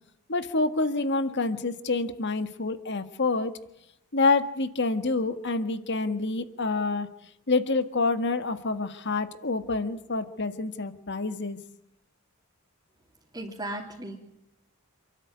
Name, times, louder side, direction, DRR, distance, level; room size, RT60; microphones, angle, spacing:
voice 1, 0.3-3.5 4.1-7.1 7.5-11.6, left 3 dB, 50° left, 10 dB, 1.7 m, -27 dB
voice 2, 13.3-14.2, right 1 dB, 20° right, -4 dB, 3.4 m, -36 dB
28.0 x 13.0 x 9.6 m, 0.86 s
head